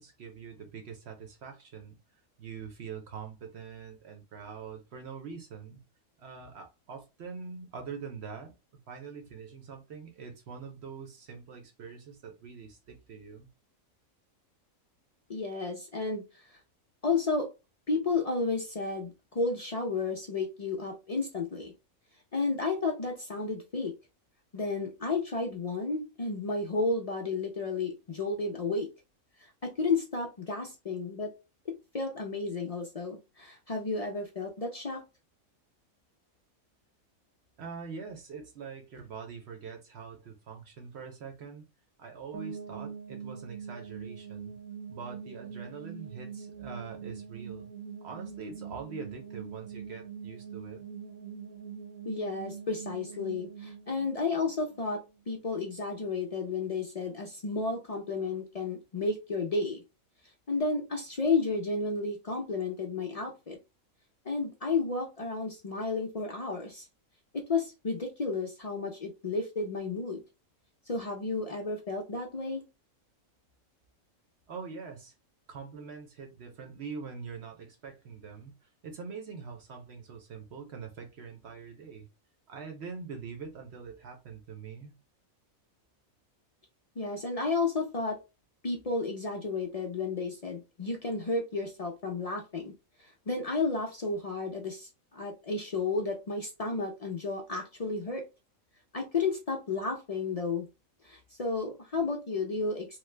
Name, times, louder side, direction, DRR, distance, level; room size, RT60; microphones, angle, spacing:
voice 1, 0.0-2.0 2.4-5.8 6.2-8.5 8.9-13.5 37.6-41.7 42.0-44.6 44.9-47.7 48.0-50.8 74.5-75.1 75.5-82.1 82.5-84.9, right 5 dB, 60° right, 0.8 m, -44 dB
voice 2, 15.3-16.4 17.0-17.5 17.9-21.7 22.3-23.9 24.5-28.9 29.6-31.3 31.7-35.0 52.1-59.8 60.5-63.6 64.2-66.9 67.3-70.2 70.9-72.6 87.0-88.2 88.6-92.7 93.3-98.2 98.9-100.7 101.0-103.0, left 3 dB, 60° left, 0.3 m, -32 dB
sound 1, 42.3-55.2, right 7 dB, 80° right, 1.2 m, -43 dB
3.1 x 2.0 x 3.2 m
omnidirectional pair, 1.5 m